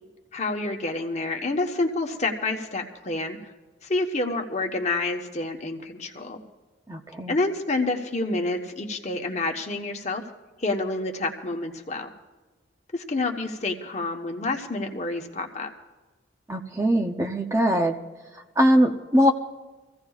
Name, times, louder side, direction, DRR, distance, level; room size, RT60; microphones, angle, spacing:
voice 1, 0.3-3.5 3.8-6.4 7.3-10.2 10.6-12.1 12.9-15.7, left 2 dB, 35° left, 3 dB, 1.1 m, -28 dB
voice 2, 6.9-7.3 16.5-17.9 18.6-19.3, equal, 15° right, 4 dB, 0.6 m, -21 dB
25.0 x 15.5 x 2.4 m, 1.2 s
head